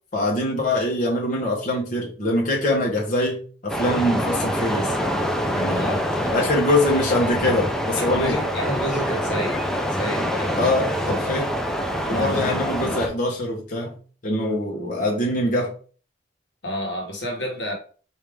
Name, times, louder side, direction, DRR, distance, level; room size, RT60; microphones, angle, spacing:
voice 1, 0.1-4.9 5.5-5.9 6.3-8.4 10.6-11.5 12.1-13.9 14.2-15.7, left 1 dB, 45° left, 1.0 m, -23 dB
sound 1, 3.7-13.1, equal, 5° left, 0.5 m, -25 dB
voice 2, 5.8-6.4 8.0-11.2 12.0-12.6 16.6-17.7, equal, 80° left, 1.3 m, -30 dB
4.7 x 2.8 x 3.4 m
head